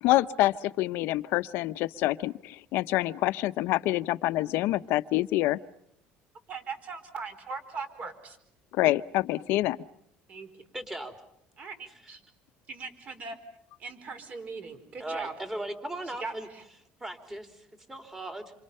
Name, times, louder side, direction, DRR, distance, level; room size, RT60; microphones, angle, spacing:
voice 1, 0.0-5.6 8.7-9.8, left 16 dB, 70° left, 13 dB, 0.9 m, -26 dB
voice 2, 6.5-8.4 10.3-10.5 11.6-12.2 12.7-13.4 13.8-15.3 16.2-16.6, right 4 dB, 35° right, 9 dB, 4.4 m, -39 dB
voice 3, 10.7-11.1 15.0-16.5 17.0-18.5, right 1 dB, 10° right, 6 dB, 3.4 m, -37 dB
28.0 x 26.5 x 5.6 m, 0.72 s
cardioid pair, 140°, 4 cm